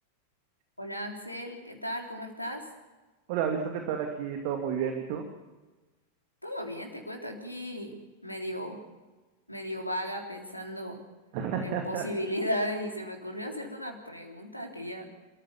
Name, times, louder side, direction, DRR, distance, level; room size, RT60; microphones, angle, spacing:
voice 1, 0.8-2.7 6.4-8.8 9.5-11.0 11.6-15.1, equal, 85° left, 3 dB, 3.6 m, -35 dB
voice 2, 3.3-5.2 11.3-12.0, right 7 dB, 45° right, 4 dB, 2.5 m, -31 dB
28.5 x 14.5 x 7.2 m, 1.2 s
figure-of-eight pair, 90°, 0 cm